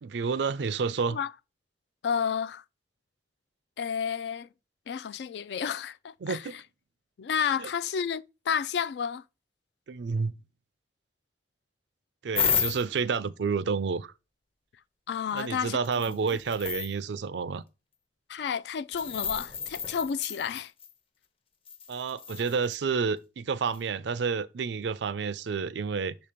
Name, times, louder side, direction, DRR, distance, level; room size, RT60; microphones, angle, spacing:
voice 1, 0.0-1.2 6.2-6.6 7.6-7.7 9.9-10.3 12.2-14.1 15.3-17.6 21.9-26.2, right 5 dB, 75° right, 0.4 m, -30 dB
voice 2, 2.0-2.6 3.8-4.5 4.9-6.4 7.2-9.2 15.1-15.8 18.3-20.7, left 7 dB, 65° left, 0.3 m, -31 dB
sound 1, 12.3-13.0 15.4-15.5 15.8-16.9 18.9-20.9 21.7-22.8 23.7-23.8, left 7 dB, 30° left, 0.7 m, -32 dB
6.7 x 2.8 x 5.0 m
head